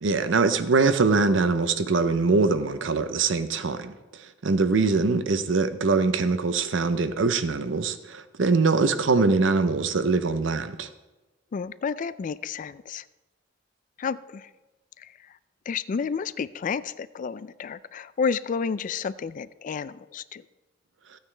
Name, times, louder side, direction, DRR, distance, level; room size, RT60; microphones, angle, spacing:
voice 1, 0.0-3.9 4.4-10.9, right 4 dB, 75° right, 11 dB, 0.6 m, -23 dB
voice 2, 11.5-13.1 14.0-14.5 15.0-15.3 15.7-20.5, left 6 dB, 45° left, 16 dB, 0.3 m, -31 dB
15.0 x 9.1 x 3.3 m, 1.1 s
head